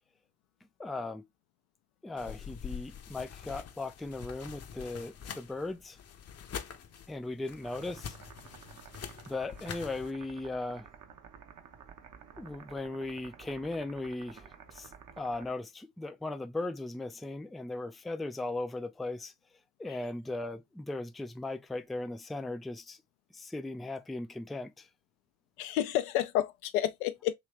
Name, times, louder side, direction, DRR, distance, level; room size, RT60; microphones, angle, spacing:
voice 1, 0.8-1.2 2.0-6.0 7.1-8.2 9.3-10.9 12.4-19.3 19.8-23.0 23.3-24.9, left 2 dB, ahead, 0.3 m, -38 dB
sound 1, 2.2-10.1, left 8 dB, 35° left, 0.7 m, -45 dB
sound 2, 7.6-15.5, right 7 dB, 45° right, 0.9 m, -52 dB
voice 2, 25.6-27.3, left 12 dB, 85° left, 0.5 m, -30 dB
3.1 x 3.0 x 3.1 m
hypercardioid pair, 45°, 43 cm